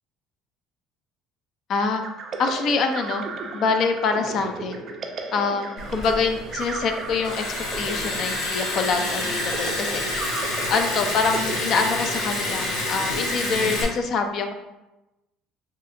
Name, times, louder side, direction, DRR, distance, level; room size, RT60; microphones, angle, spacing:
voice 1, 1.7-2.0 2.4-3.3 3.5-4.8 5.3-7.5 7.8-10.3 10.7-14.5, left 4 dB, 45° left, 6 dB, 0.3 m, -25 dB
sound 1, 2.0-12.6, right 4 dB, 40° right, 0.3 m, -35 dB
Liquid, 5.8-13.8, left 2 dB, 70° left, 0.8 m, -28 dB
3.2 x 2.8 x 2.5 m, 0.99 s
cardioid pair, 140°, 0 cm